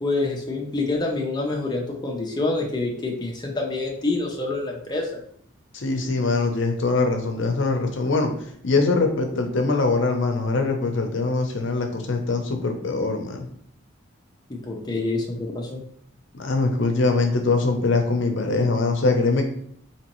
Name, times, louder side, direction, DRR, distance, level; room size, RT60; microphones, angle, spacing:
voice 1, 0.0-5.1 14.5-15.8, left 2 dB, 20° left, 0 dB, 0.5 m, -27 dB
voice 2, 5.7-8.3 8.6-13.5 16.3-19.4, left 3 dB, 65° left, 4 dB, 0.6 m, -22 dB
4.0 x 2.9 x 3.0 m, 0.65 s
head